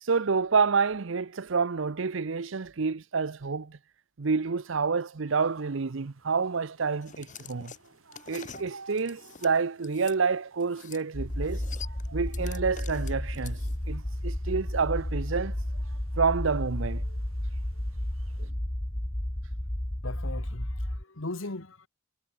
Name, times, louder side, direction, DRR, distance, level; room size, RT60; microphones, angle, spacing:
voice 1, 0.0-3.8 4.2-7.7 8.3-11.6 12.1-13.6 13.9-15.5 16.2-17.0 18.4-18.5, right 5 dB, 65° right, 0.7 m, -28 dB
sound 1, 5.3-18.5, right 4 dB, 85° right, 6.3 m, -56 dB
sound 2, 7.0-10.2 10.6-11.0 11.3-13.9, left 7 dB, 40° left, 1.1 m, -46 dB
sound 3, 11.1-21.0, left 1 dB, 20° left, 1.3 m, -32 dB
voice 2, 20.0-21.9, left 2 dB, 75° left, 1.7 m, -38 dB
head